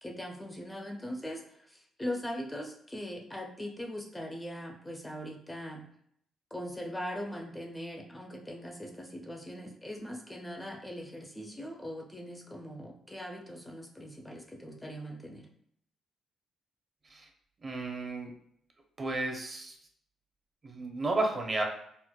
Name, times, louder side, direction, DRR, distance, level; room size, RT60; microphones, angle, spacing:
voice 1, 0.0-5.8 6.5-15.5, equal, 10° left, 1 dB, 0.4 m, -40 dB
voice 2, 17.6-18.3 19.0-19.8 20.6-21.6, right 2 dB, 35° right, 2 dB, 0.6 m, -32 dB
4.2 x 2.0 x 2.2 m, 0.68 s
cardioid pair, 90°, 0 cm